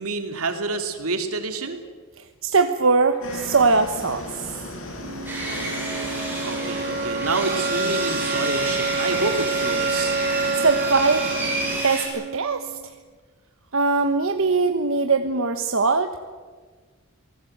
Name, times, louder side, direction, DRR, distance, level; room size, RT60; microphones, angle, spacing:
voice 1, 0.0-1.8 6.4-10.2, right 3 dB, 90° right, 6 dB, 3.0 m, -28 dB
voice 2, 2.2-4.3 10.5-11.3 11.8-12.8 13.7-16.1, right 4 dB, 65° right, 6 dB, 1.2 m, -21 dB
sound 1, 3.2-11.8, left 1 dB, 65° left, 5.5 m, -36 dB
sound 2, 5.0-13.0, right 4 dB, 40° right, 0.6 m, -28 dB
Sawing, 5.3-12.1, right 2 dB, 10° right, 7.1 m, -30 dB
27.5 x 19.5 x 8.0 m, 1.5 s
head